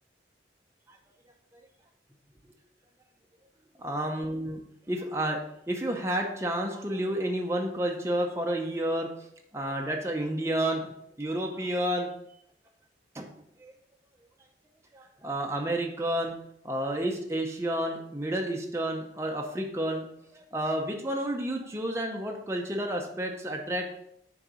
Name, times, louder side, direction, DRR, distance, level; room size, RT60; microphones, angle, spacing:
voice 1, 3.8-4.6 4.9-5.4 5.7-9.1 9.5-12.1 13.1-13.3 13.6-13.7 14.9-16.3 16.6-20.0 20.3-23.9, right 1 dB, 15° right, 1 dB, 0.7 m, -30 dB
6.5 x 4.0 x 6.2 m, 0.74 s
head